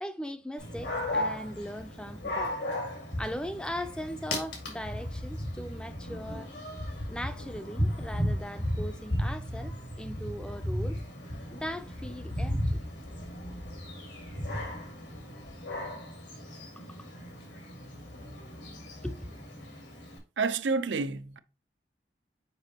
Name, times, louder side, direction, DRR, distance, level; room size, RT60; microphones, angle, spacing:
voice 1, 0.0-2.6 3.2-6.5 7.1-11.0 11.5-12.8 16.8-17.1 19.0-19.3, equal, 5° left, 0.4 m, -39 dB
Dog, 0.6-20.2, left 1 dB, 80° left, 2.1 m, -35 dB
voice 2, 20.4-21.4, right 4 dB, 90° right, 0.6 m, -29 dB
6.9 x 5.0 x 2.9 m
head